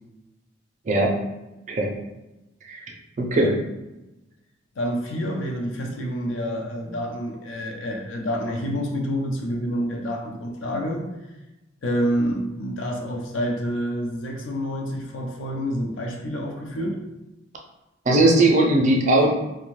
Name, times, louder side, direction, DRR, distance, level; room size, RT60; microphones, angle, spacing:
voice 1, 3.2-3.6 18.1-19.3, right 2 dB, 40° right, 0 dB, 0.4 m, -19 dB
voice 2, 4.8-11.0 11.8-17.0, equal, 80° left, 1 dB, 0.5 m, -28 dB
2.5 x 2.2 x 3.1 m, 1.0 s
head